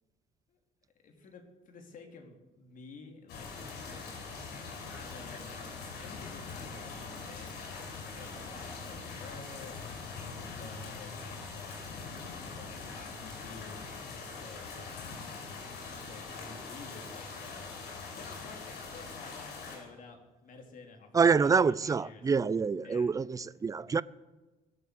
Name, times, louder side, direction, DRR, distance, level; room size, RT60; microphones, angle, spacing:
voice 1, 1.0-3.8 4.9-9.9 10.4-11.8 12.5-15.5 16.0-17.7 18.2-22.2 22.8-23.1, left 4 dB, 50° left, 3.4 m, -51 dB
sound 1, 3.3-19.8, left 4 dB, 75° left, 6.6 m, -43 dB
voice 2, 21.1-24.0, right 5 dB, 20° right, 0.5 m, -26 dB
22.0 x 8.1 x 7.8 m
cardioid pair, 110°, 17 cm